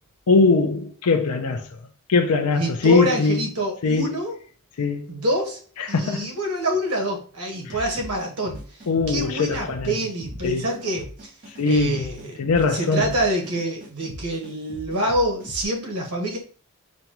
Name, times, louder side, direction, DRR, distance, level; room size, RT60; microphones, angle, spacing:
voice 1, 0.3-1.7 2.1-3.4 3.8-4.1 4.8-5.1 5.8-6.3 7.7-7.8 8.9-9.9 10.4-10.7 11.6-12.1 12.4-13.1, left 4 dB, 90° left, 0.5 m, -21 dB
voice 2, 2.5-4.3 5.1-5.6 5.9-8.6 9.1-11.3 11.6-12.3 12.7-16.4, right 1 dB, 90° right, 1.3 m, -26 dB
sound 1, 7.7-15.6, equal, 40° right, 1.0 m, -40 dB
5.1 x 2.3 x 2.9 m
head